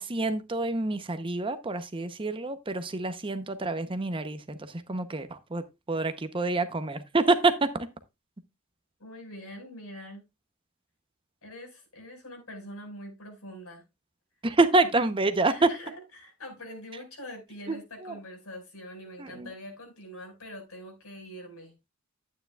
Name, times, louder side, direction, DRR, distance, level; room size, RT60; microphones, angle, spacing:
voice 1, 0.0-5.6 5.9-7.9 14.4-15.5 17.7-17.8 18.0-18.1 19.2-19.5, right 2 dB, 25° right, 0.7 m, -27 dB
voice 2, 9.0-10.2 11.4-13.8 14.8-14.9 15.4-21.7, equal, 75° left, 5.0 m, -44 dB
11.5 x 9.2 x 2.3 m
head